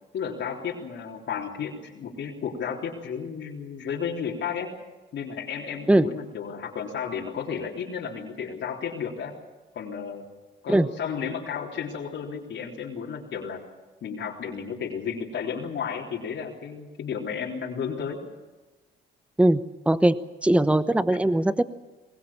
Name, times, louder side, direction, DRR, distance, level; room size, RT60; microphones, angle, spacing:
voice 1, 0.1-4.7 5.1-9.3 9.7-10.3 10.6-13.6 14.0-18.2, left 7 dB, 65° left, -3 dB, 3.7 m, -33 dB
voice 2, 19.9-20.2 20.4-21.6, right 1 dB, 5° right, 13 dB, 1.0 m, -20 dB
23.0 x 20.5 x 7.3 m, 1.2 s
cardioid pair, 90°, 20 cm